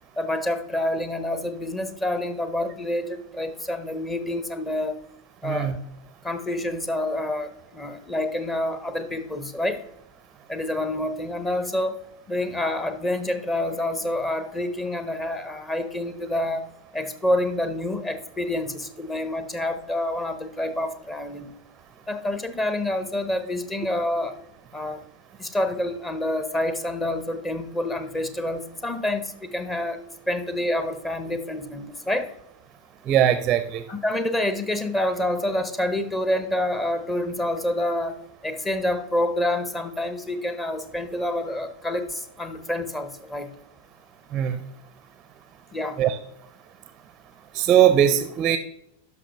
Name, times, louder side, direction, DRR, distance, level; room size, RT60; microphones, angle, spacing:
voice 1, 0.2-5.0 5.4-5.8 6.2-9.8 10.5-11.9 12.3-16.7 16.9-21.5 22.1-24.3 24.7-25.0 25.4-32.3 33.9-43.5 45.7-46.0, left 1 dB, 15° left, 9 dB, 0.8 m, -27 dB
voice 2, 5.4-5.8 33.0-33.8 44.3-44.6 46.0-46.2 47.5-48.6, right 10 dB, 30° right, 12 dB, 0.5 m, -20 dB
11.0 x 5.9 x 3.0 m, 0.76 s
figure-of-eight pair, 90°, 0 cm